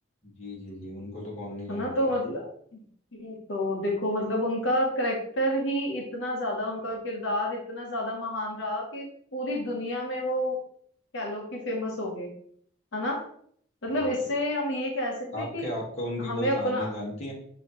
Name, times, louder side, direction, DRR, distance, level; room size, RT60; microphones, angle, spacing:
voice 1, 0.2-2.1 13.9-14.1 15.3-17.3, left 1 dB, 35° left, -4 dB, 1.5 m, -36 dB
voice 2, 1.7-2.5 3.1-10.6 11.1-12.3 12.9-13.2 13.8-15.7 16.2-16.9, equal, 80° left, -1 dB, 0.9 m, -29 dB
6.2 x 2.8 x 2.9 m, 0.64 s
head